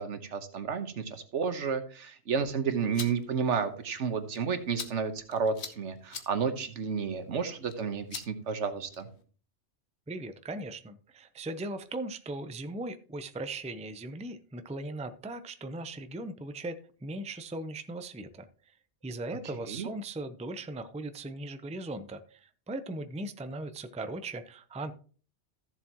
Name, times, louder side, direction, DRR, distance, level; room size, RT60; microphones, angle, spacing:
voice 1, 0.0-9.1 19.4-19.9, right 6 dB, 80° right, 8 dB, 1.4 m, -31 dB
sound 1, 2.7-9.2, left 6 dB, 70° left, 1.4 m, -47 dB
voice 2, 10.1-18.5 19.0-24.9, right 2 dB, 10° right, 10 dB, 0.4 m, -38 dB
14.5 x 7.3 x 2.9 m, 0.41 s
omnidirectional pair, 1.2 m